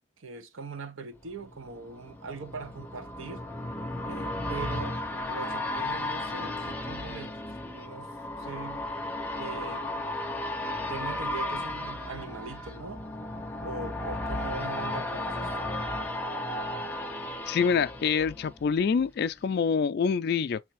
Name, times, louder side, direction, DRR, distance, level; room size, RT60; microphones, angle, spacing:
voice 1, 0.2-3.4 4.0-5.0 5.3-7.4 7.7-8.1 8.4-8.9 9.3-10.0 10.9-13.0 13.6-15.7, right 4 dB, 85° right, 0.7 m, -41 dB
sound 1, 1.3-19.0 19.5-19.6, left 1 dB, 10° left, 0.6 m, -34 dB
voice 2, 17.5-20.6, left 6 dB, 55° left, 0.3 m, -26 dB
3.4 x 3.3 x 4.5 m
head